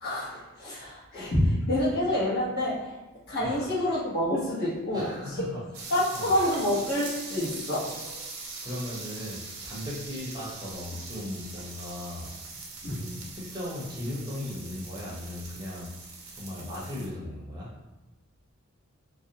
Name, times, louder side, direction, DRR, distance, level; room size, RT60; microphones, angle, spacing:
voice 1, 0.0-2.8 3.3-5.1 5.9-8.1 12.8-13.0, left 1 dB, 50° left, -8 dB, 0.9 m, -27 dB
voice 2, 3.4-3.8 4.9-6.3 8.6-12.3 13.0-15.9 16.3-17.7, left 1 dB, 20° right, -6 dB, 0.6 m, -37 dB
sound 1, 5.7-17.1, right 3 dB, 80° right, 0.6 m, -42 dB
2.6 x 2.0 x 2.7 m, 1.1 s
head